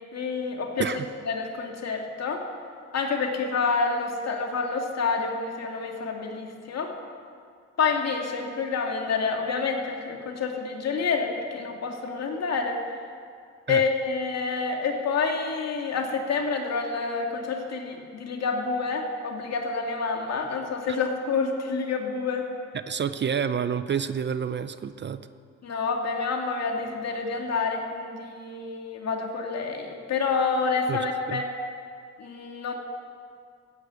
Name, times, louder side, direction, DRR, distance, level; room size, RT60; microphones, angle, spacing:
voice 1, 0.1-0.9 1.3-2.4 2.9-6.9 7.8-12.8 13.7-22.5 25.6-31.5 32.2-32.7, left 4 dB, 60° left, 2 dB, 2.3 m, -28 dB
voice 2, 22.7-25.2 30.9-31.0 31.3-31.4, right 7 dB, 35° right, 12 dB, 0.6 m, -28 dB
15.0 x 9.7 x 8.2 m, 2.2 s
cardioid pair, 90°, 30 cm